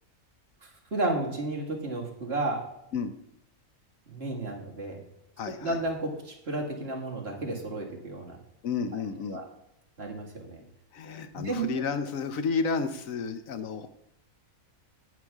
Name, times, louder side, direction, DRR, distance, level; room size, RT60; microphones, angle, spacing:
voice 1, 0.6-2.7 4.1-5.0 5.5-8.4 8.9-9.0 9.3-9.4 10.0-10.6 11.0-11.8, right 2 dB, 45° right, -1 dB, 2.2 m, -33 dB
voice 2, 5.4-5.7 8.6-9.4 10.9-13.9, left 5 dB, 75° left, 10 dB, 1.2 m, -31 dB
10.5 x 9.5 x 3.6 m, 0.81 s
omnidirectional pair, 1.4 m